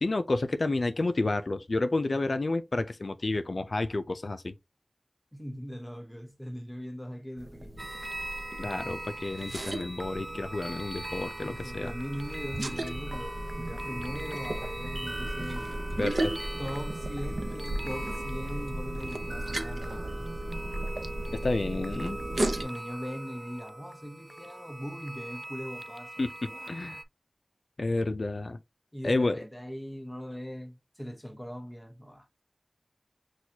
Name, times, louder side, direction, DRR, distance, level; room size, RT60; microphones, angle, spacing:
voice 1, 0.0-4.5 8.6-11.9 16.0-16.4 21.3-22.2 26.2-26.3 26.7-27.0 27.8-28.6 29.0-29.4, left 2 dB, 75° left, 0.4 m, -30 dB
voice 2, 5.3-7.9 11.4-15.7 16.6-20.3 22.6-26.9 28.9-32.3, equal, 5° left, 1.0 m, -40 dB
sound 1, 7.4-22.6, right 1 dB, 70° right, 0.6 m, -35 dB
sound 2, 7.8-27.0, right 1 dB, 25° right, 0.4 m, -41 dB
6.1 x 2.4 x 2.7 m
wide cardioid pair, 55°, 0 cm